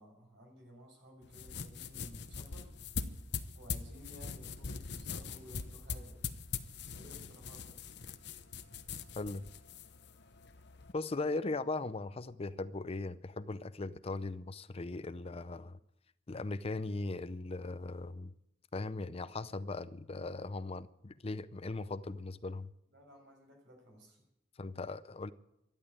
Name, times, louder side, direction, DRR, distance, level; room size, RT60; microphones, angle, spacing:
voice 1, 0.0-2.7 3.5-6.2 6.9-7.9 22.9-24.2, equal, 75° right, 6.3 m, -56 dB
sound 1, 1.2-10.9, left 5 dB, 65° left, 1.0 m, -42 dB
voice 2, 10.9-15.8 16.3-18.3 18.7-22.7 24.6-25.3, left 3 dB, 35° left, 0.6 m, -39 dB
12.5 x 12.0 x 9.6 m
head